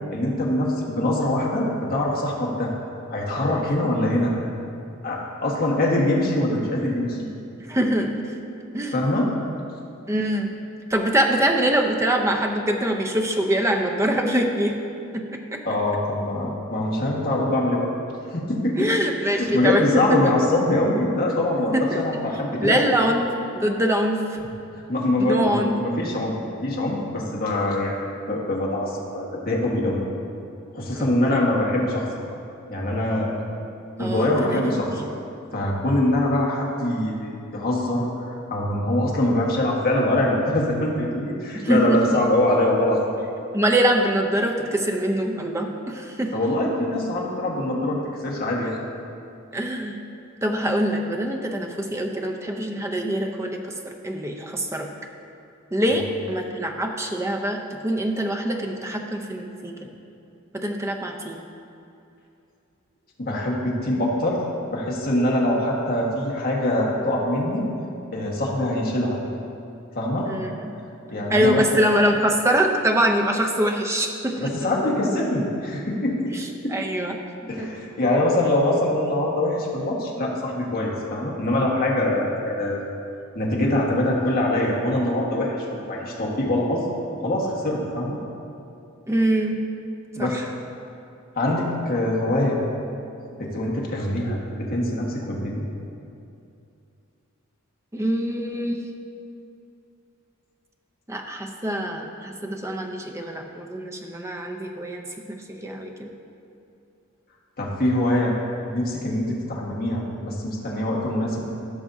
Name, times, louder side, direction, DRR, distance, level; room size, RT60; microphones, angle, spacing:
voice 1, 0.1-2.7 3.1-4.3 5.0-7.3 8.9-9.3 15.6-17.9 18.3-18.9 19.2-22.9 24.9-26.3 26.6-27.9 28.3-30.0 30.7-32.1 32.7-33.3 34.0-34.9 35.5-38.1 38.5-43.0 46.3-48.8 63.2-64.4 64.7-67.6 68.1-69.2 69.9-70.3 71.1-71.8 74.4-76.3 76.6-76.7 77.5-82.9 83.3-86.8 87.2-88.2 90.1-90.4 91.3-92.6 93.3-95.7 107.6-108.3 108.7-111.5, left 1 dB, 45° left, -3 dB, 1.5 m, -23 dB
voice 2, 7.7-8.3 8.7-9.0 10.1-10.5 10.9-14.7 15.1-15.6 18.8-20.2 21.7-22.0 22.6-24.2 25.2-25.8 30.9-31.4 34.0-34.6 34.9-35.0 41.5-42.2 43.5-46.3 49.5-50.0 50.4-54.9 55.7-59.7 60.5-61.4 70.2-70.7 71.3-74.7 76.3-77.2 77.6-77.7 89.1-89.6 90.2-90.5 97.9-98.8 101.1-106.1, right 1 dB, 15° right, 2 dB, 0.6 m, -24 dB
15.5 x 6.1 x 2.7 m, 2.6 s
head